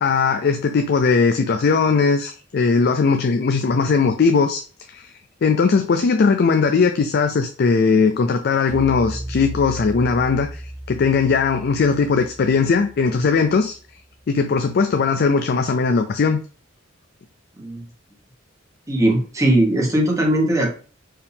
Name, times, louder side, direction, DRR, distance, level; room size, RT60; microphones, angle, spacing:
voice 1, 0.0-4.6 4.9-5.1 5.4-10.6 10.9-13.7 14.3-16.4, left 4 dB, 55° left, 6 dB, 0.4 m, -19 dB
sound 1, 8.7-14.1, right 1 dB, 40° right, 1.2 m, -35 dB
voice 2, 18.9-20.7, right 1 dB, 15° right, -1 dB, 1.2 m, -19 dB
4.7 x 2.8 x 3.5 m, 0.37 s
head